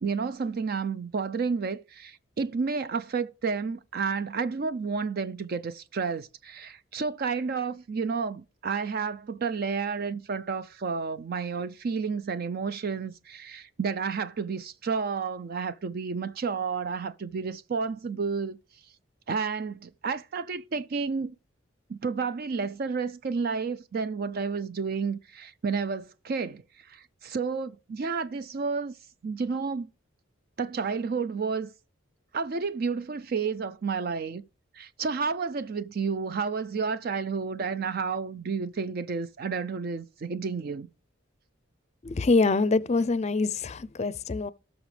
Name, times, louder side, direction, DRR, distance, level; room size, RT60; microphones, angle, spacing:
voice 1, 0.0-18.6 19.3-21.4 21.9-29.0 29.2-29.9 30.6-31.7 32.3-34.4 34.7-40.9, right 5 dB, 50° right, 0.4 m, -31 dB
voice 2, 42.0-44.5, left 3 dB, 35° left, 0.5 m, -25 dB
18.0 x 6.2 x 3.3 m
head